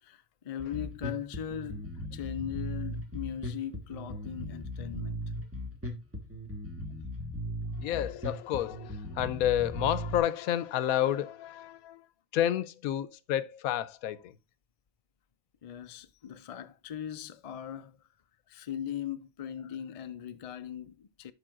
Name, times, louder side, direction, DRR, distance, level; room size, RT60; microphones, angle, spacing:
voice 1, 0.0-5.2 15.6-18.0 18.5-21.3, left 9 dB, 65° left, 0.3 m, -39 dB
Bass guitar, 0.6-10.2, equal, 10° right, 1.4 m, -38 dB
voice 2, 7.5-12.1 12.3-14.4, left 11 dB, 90° left, 1.1 m, -30 dB
12.0 x 5.3 x 2.4 m
omnidirectional pair, 1.5 m